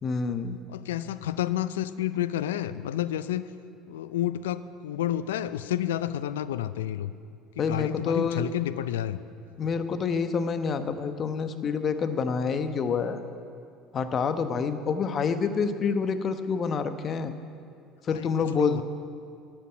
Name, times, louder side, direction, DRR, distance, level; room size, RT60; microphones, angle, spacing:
voice 1, 0.0-0.6 7.6-8.4 9.6-13.2 13.9-17.3 18.0-18.8, left 5 dB, 40° left, 10 dB, 1.0 m, -27 dB
voice 2, 0.7-3.4 3.9-7.1 7.6-9.2 9.6-9.7 18.1-18.8, left 12 dB, 80° left, 14 dB, 0.4 m, -30 dB
10.0 x 8.5 x 9.8 m, 2.4 s
hypercardioid pair, 70°, 0 cm